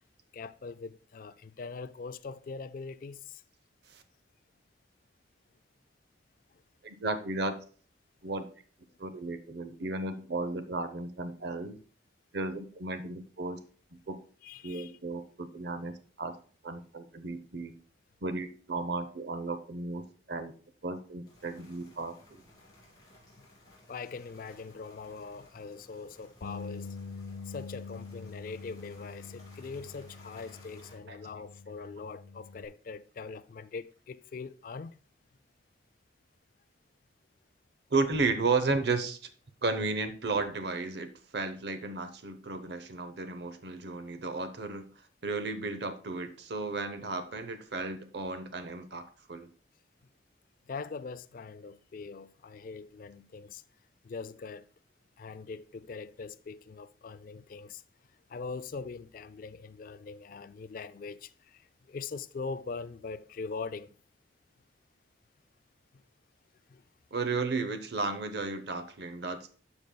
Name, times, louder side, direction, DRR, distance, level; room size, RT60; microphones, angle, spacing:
voice 1, 0.3-3.4 6.5-6.6 14.4-15.0 23.9-27.0 27.4-35.0 50.7-53.6 54.0-54.7 55.2-57.8 58.3-64.0 66.7-66.8, left 4 dB, 45° left, 0.3 m, -42 dB
voice 2, 6.8-7.6 8.2-8.5 9.0-11.8 12.3-13.6 14.1-14.2 14.6-16.3 16.6-17.7 18.2-20.5 20.8-22.4 31.1-31.2 37.9-39.2 39.6-44.9 45.2-49.5 67.1-69.5, right 3 dB, 55° right, 0.7 m, -34 dB
sound 1, 21.2-30.9, left 1 dB, 20° left, 2.3 m, -58 dB
Bass guitar, 26.4-32.7, left 4 dB, 80° left, 0.6 m, -45 dB
12.5 x 5.3 x 2.2 m
head